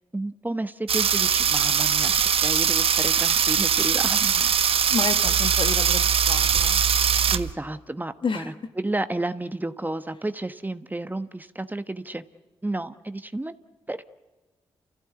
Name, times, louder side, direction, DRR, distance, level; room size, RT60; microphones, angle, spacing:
voice 1, 0.1-4.5 7.3-12.2 12.6-13.5 13.9-14.0, right 2 dB, 15° right, 11 dB, 1.2 m, -31 dB
sound 1, 0.9-7.5, right 7 dB, 70° right, 0.9 m, -21 dB
voice 2, 4.9-6.8 8.2-8.5, left 5 dB, 55° left, 8 dB, 1.9 m, -30 dB
29.5 x 15.0 x 9.7 m, 1.2 s
supercardioid pair, 45°, 10 cm